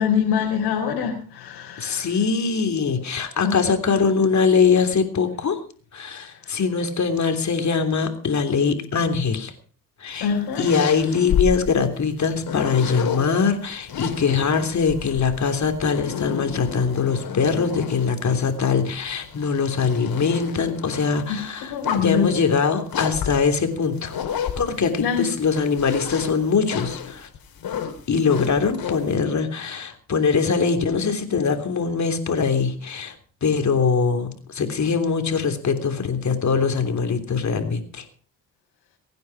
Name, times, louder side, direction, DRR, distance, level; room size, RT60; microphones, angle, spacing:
voice 1, 0.0-2.1 3.4-3.6 10.2-10.6 21.7-22.3 25.0-25.3, left 7 dB, 80° left, -2 dB, 3.9 m, -24 dB
voice 2, 1.8-5.6 5.9-9.5 10.0-24.2 24.6-27.3 28.1-33.1 33.4-38.0, left 5 dB, 45° left, 6 dB, 3.3 m, -22 dB
sound 1, 10.1-13.3 13.8-18.3 18.8-21.2 21.7-22.3 22.9-25.0 25.4-29.1, left 8 dB, 65° left, 3.7 m, -30 dB
23.5 x 9.5 x 4.8 m, 0.42 s
supercardioid pair, 65°, 38 cm